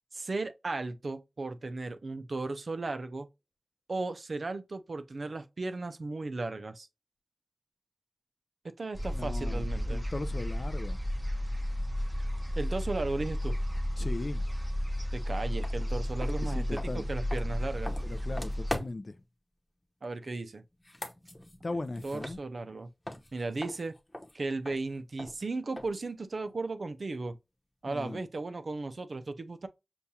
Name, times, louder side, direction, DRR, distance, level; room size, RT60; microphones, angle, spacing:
voice 1, 0.1-3.3 3.9-6.9 8.6-10.0 12.6-13.5 15.1-17.9 20.0-20.6 22.0-22.9 23.3-23.9 24.3-27.4 27.8-29.7, right 3 dB, 75° right, 0.5 m, -36 dB
sound 1, 8.9-18.8, equal, 15° right, 0.9 m, -33 dB
voice 2, 9.1-11.0 14.0-14.4 16.4-17.1 18.0-19.2 21.6-22.4 27.9-28.2, left 2 dB, 55° left, 0.4 m, -38 dB
Footsteps - to and from mic, 15.6-15.8 16.2-19.2 20.7-22.8 23.0-26.1, left 1 dB, 20° left, 0.9 m, -42 dB
6.9 x 2.4 x 2.7 m
wide cardioid pair, 70°, 0 cm